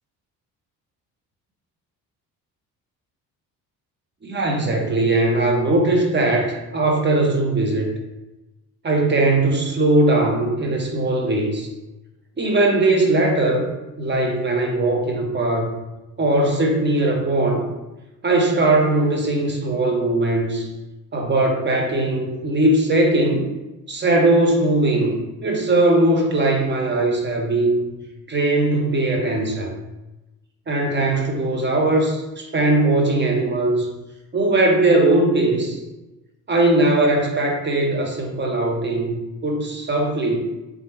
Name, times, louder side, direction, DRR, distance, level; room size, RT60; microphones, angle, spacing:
voice 1, 4.2-7.9 8.8-11.7 12.4-15.8 16.2-17.7 18.2-20.7 21.1-23.5 23.9-27.8 28.3-29.7 30.7-33.9 34.3-35.8 36.5-40.4, right 2 dB, 20° right, 0 dB, 1.0 m, -19 dB
3.6 x 3.0 x 3.1 m, 1.0 s
figure-of-eight pair, 45°, 49 cm